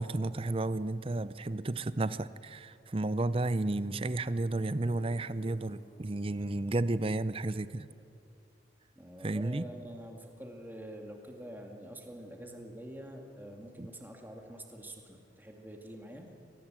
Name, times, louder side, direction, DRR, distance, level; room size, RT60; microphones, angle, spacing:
voice 1, 0.0-7.9 9.2-9.6 13.8-13.9, right 2 dB, 30° right, 15 dB, 0.6 m, -32 dB
sound 1, 3.1-8.8, left 1 dB, 35° left, 2.9 m, -57 dB
voice 2, 9.0-16.3, right 1 dB, 10° right, 2 dB, 2.2 m, -46 dB
25.0 x 20.0 x 7.7 m, 2.6 s
head